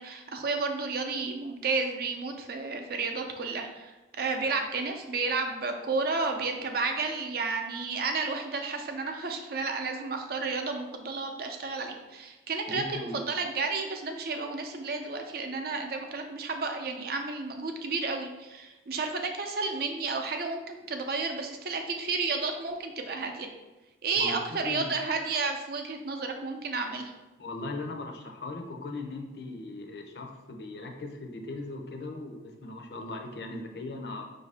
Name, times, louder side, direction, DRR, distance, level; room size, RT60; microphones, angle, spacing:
voice 1, 0.0-23.5 24.0-27.1, right 4 dB, 55° right, 4 dB, 0.5 m, -32 dB
voice 2, 12.7-13.2 24.1-24.3 24.6-24.9 27.4-34.3, left 2 dB, 60° left, 2 dB, 0.6 m, -38 dB
5.4 x 2.6 x 3.3 m, 1.1 s
head